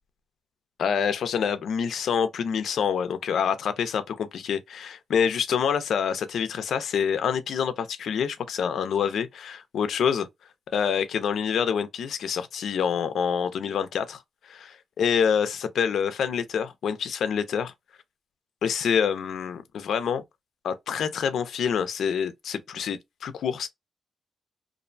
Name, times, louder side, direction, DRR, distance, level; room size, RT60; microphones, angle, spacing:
voice 1, 0.8-10.3 10.7-17.7 18.6-20.2 20.6-23.7, left 7 dB, 70° left, 0.5 m, -26 dB
2.6 x 2.0 x 2.5 m
cardioid pair, 125°, 0 cm